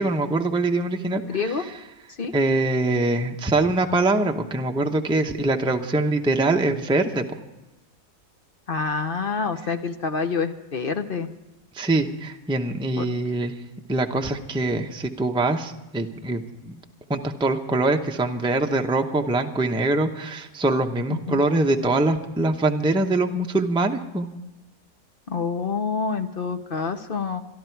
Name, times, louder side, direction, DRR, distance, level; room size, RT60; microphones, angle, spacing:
voice 1, 0.0-1.5 2.3-7.2 11.7-13.5 13.9-16.8 17.1-24.3, right 2 dB, 5° right, 4 dB, 0.6 m, -23 dB
voice 2, 1.3-1.7 2.1-2.3 8.7-11.3 13.0-13.1 21.1-21.4 25.3-27.4, left 5 dB, 45° left, 8 dB, 0.9 m, -27 dB
26.0 x 11.5 x 4.6 m, 1.0 s
omnidirectional pair, 1.5 m